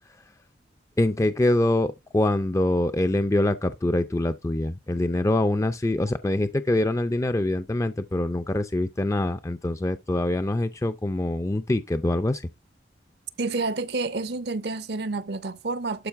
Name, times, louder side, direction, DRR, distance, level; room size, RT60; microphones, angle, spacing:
voice 1, 1.0-12.4, left 1 dB, 15° left, 0.4 m, -24 dB
voice 2, 13.4-16.1, right 3 dB, 65° right, 0.7 m, -29 dB
12.0 x 5.2 x 3.5 m
head